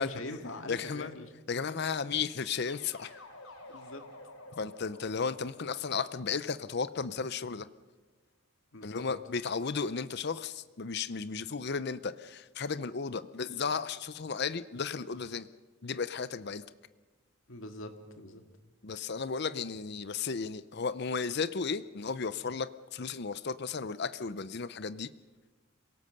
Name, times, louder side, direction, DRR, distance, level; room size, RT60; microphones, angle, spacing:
voice 1, 0.0-1.3 3.7-4.0 8.7-9.0 17.5-18.4, left 1 dB, 65° left, 6 dB, 2.1 m, -42 dB
voice 2, 0.7-1.1 1.5-3.1 4.6-7.7 8.8-15.5 15.8-16.6 18.8-25.1, left 5 dB, 50° left, 14 dB, 0.6 m, -34 dB
sound 1, 2.2-7.2, left 2 dB, 85° left, 3.3 m, -52 dB
26.5 x 17.5 x 6.7 m, 1.2 s
head